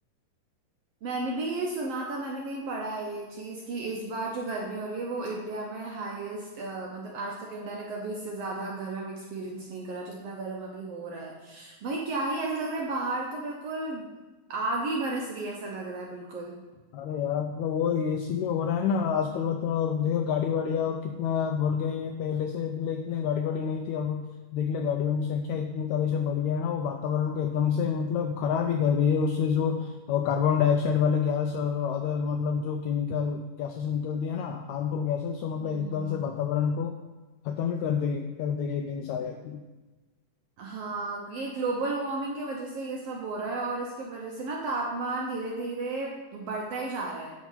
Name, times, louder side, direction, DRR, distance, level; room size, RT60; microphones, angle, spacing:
voice 1, 1.0-14.0 14.5-16.6 35.6-36.2 40.6-47.3, right 2 dB, 70° right, -1 dB, 1.5 m, -33 dB
voice 2, 16.9-24.2 24.5-37.0 37.4-39.6, left 7 dB, 85° left, 4 dB, 1.6 m, -28 dB
10.5 x 3.6 x 5.6 m, 1.2 s
omnidirectional pair, 3.7 m